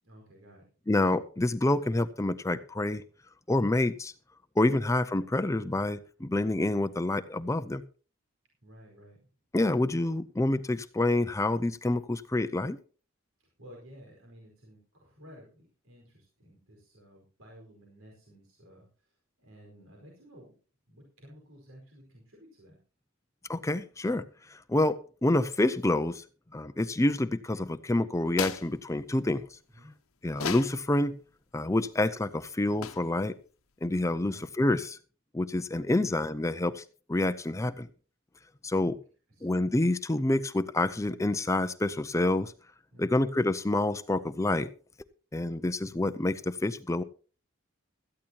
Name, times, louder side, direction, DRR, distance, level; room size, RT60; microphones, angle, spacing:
voice 1, 0.0-0.9 8.6-9.3 13.4-20.5 20.9-22.8 29.7-29.9 34.3-34.5 38.7-39.0 39.3-39.6 42.9-43.2, equal, 80° right, 0 dB, 4.8 m, -54 dB
voice 2, 0.9-3.0 3.5-4.1 4.6-7.8 9.5-12.8 23.5-26.2 26.5-29.6 30.2-31.1 31.5-33.3 33.8-35.0 35.3-36.8 37.1-37.9 38.6-39.0 39.4-42.5 43.0-44.7 45.3-47.0, left 2 dB, 15° left, 11 dB, 0.5 m, -27 dB
sound 1, 28.3-28.7 30.3-30.8 32.8-33.2, left 7 dB, 85° left, 0.9 m, -34 dB
17.5 x 13.5 x 2.9 m, 0.38 s
head